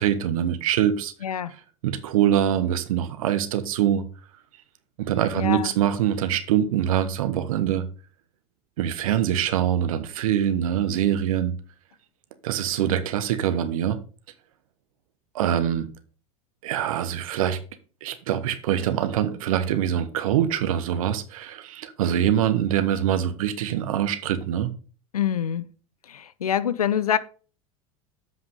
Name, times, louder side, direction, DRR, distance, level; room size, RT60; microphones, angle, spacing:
voice 1, 0.0-1.1 1.8-4.0 5.0-7.9 8.8-11.6 12.4-14.0 15.3-15.9 16.6-17.6 18.0-24.7, right 10 dB, 70° right, 1.2 m, -24 dB
voice 2, 1.2-1.5 5.3-5.7 25.1-25.6 26.1-27.2, left 9 dB, 90° left, 0.6 m, -25 dB
7.9 x 5.5 x 4.8 m
hypercardioid pair, 85°, 18 cm